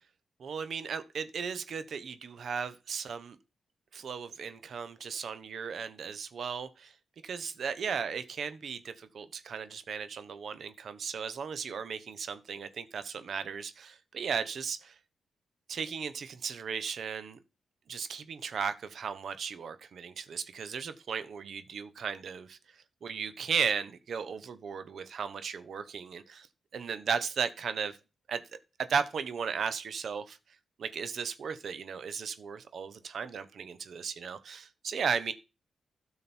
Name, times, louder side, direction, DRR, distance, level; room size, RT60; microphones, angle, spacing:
voice 1, 0.4-3.4 3.9-6.9 7.2-14.9 15.7-17.4 17.9-26.5 26.7-28.0 28.3-28.4 28.9-30.4 30.8-35.3, right 6 dB, 70° right, 1.2 m, -36 dB
12.5 x 6.4 x 4.5 m
supercardioid pair, 45°, 0 cm